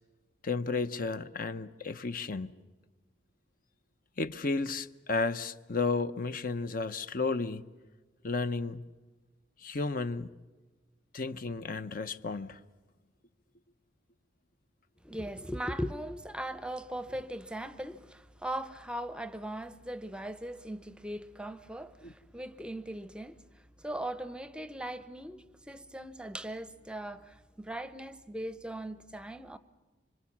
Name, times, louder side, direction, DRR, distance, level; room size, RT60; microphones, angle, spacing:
voice 1, 0.4-2.5 4.2-7.6 8.2-8.8 9.6-10.3 11.1-12.6 22.0-22.1, left 3 dB, 50° left, 0.8 m, -33 dB
voice 2, 15.0-29.6, right 1 dB, 5° right, 0.7 m, -39 dB
26.5 x 25.0 x 7.2 m
head